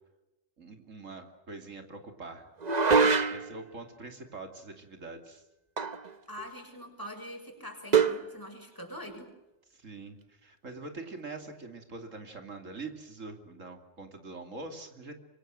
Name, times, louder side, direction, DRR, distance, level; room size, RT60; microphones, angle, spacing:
voice 1, 0.6-2.5 3.1-5.4 9.8-15.1, right 3 dB, 80° right, 5 dB, 3.2 m, -44 dB
sound 1, 2.6-3.6 5.8-6.1 6.4-6.5 7.9-8.3, right 5 dB, 35° right, 1.2 m, -24 dB
voice 2, 6.3-9.3, equal, 15° left, 3 dB, 6.7 m, -43 dB
26.0 x 24.5 x 7.7 m, 0.97 s
omnidirectional pair, 1.3 m